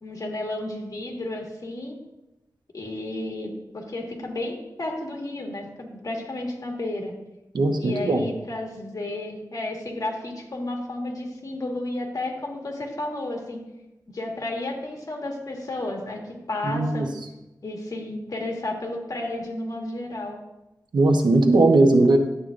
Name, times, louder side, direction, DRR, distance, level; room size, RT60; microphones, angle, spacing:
voice 1, 0.0-2.0 2.7-7.1 7.8-13.6 14.1-17.1 17.6-20.4, left 2 dB, 50° left, 1 dB, 1.7 m, -32 dB
voice 2, 7.5-8.2 16.6-17.1 20.9-22.2, right 2 dB, 85° right, 4 dB, 0.9 m, -18 dB
11.0 x 8.2 x 2.6 m, 0.96 s
wide cardioid pair, 105°, 7 cm